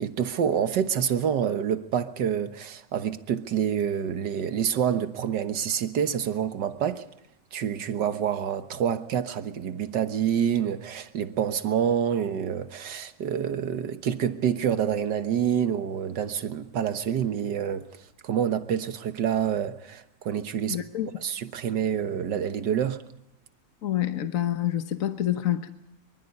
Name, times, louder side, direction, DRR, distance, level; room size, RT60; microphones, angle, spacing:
voice 1, 0.0-7.1 7.5-17.8 18.2-20.8 21.2-23.0, right 8 dB, 70° right, 1.8 m, -27 dB
voice 2, 20.7-21.1 23.8-25.7, left 12 dB, 50° left, 1.3 m, -27 dB
24.5 x 24.0 x 5.4 m
omnidirectional pair, 2.0 m